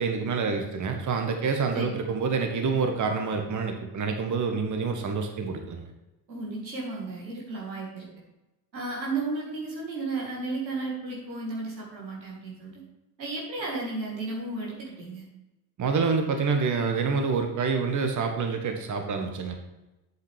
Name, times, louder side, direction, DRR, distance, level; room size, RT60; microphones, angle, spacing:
voice 1, 0.0-5.9 15.8-19.5, right 5 dB, 35° right, 4 dB, 1.5 m, -27 dB
voice 2, 6.3-8.1 8.7-12.8 13.2-15.2, right 3 dB, 90° right, -3 dB, 2.2 m, -33 dB
8.1 x 8.0 x 3.5 m, 1.0 s
figure-of-eight pair, 55°, 50 cm